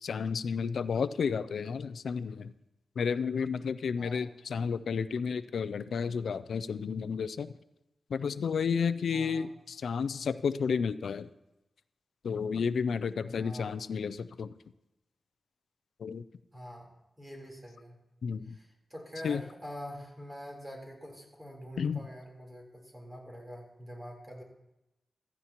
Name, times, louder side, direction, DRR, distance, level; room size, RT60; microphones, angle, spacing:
voice 1, 0.0-2.5 3.0-7.5 8.1-11.3 12.2-14.5 16.0-16.2 18.2-18.6 19.2-19.4 21.8-22.0, left 6 dB, 85° left, 14 dB, 0.4 m, -32 dB
voice 2, 4.0-4.3 9.1-9.5 13.3-14.0 16.5-16.9 17.2-18.0 18.4-24.4, equal, 15° right, -1 dB, 3.7 m, -45 dB
15.5 x 14.0 x 3.0 m, 0.90 s
wide cardioid pair, 100°, 0 cm